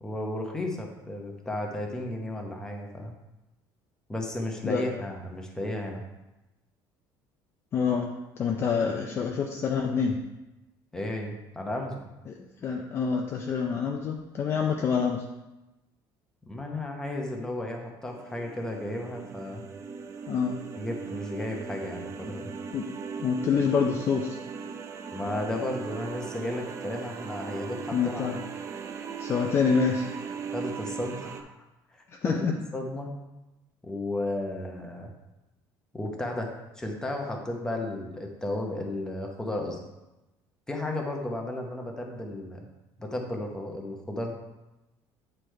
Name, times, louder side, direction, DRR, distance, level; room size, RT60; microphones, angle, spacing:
voice 1, 0.0-3.1 4.1-6.0 10.9-12.0 16.5-19.6 20.7-22.5 25.1-28.4 29.6-29.7 30.5-31.5 31.9-32.5 32.7-33.1 33.8-35.1 35.9-36.5 36.8-39.8 40.7-42.7 43.0-44.3, left 1 dB, 5° left, 1 dB, 0.8 m, -34 dB
voice 2, 4.6-5.0 7.7-10.2 12.3-15.3 20.3-20.6 22.7-22.9 23.2-24.4 27.9-28.4 29.2-30.1 32.1-32.6, left 6 dB, 30° left, 2 dB, 0.4 m, -27 dB
sound 1, 18.1-31.4, right 6 dB, 35° right, 0.4 m, -39 dB
8.2 x 3.2 x 4.4 m, 1.0 s
cardioid pair, 160°, 8 cm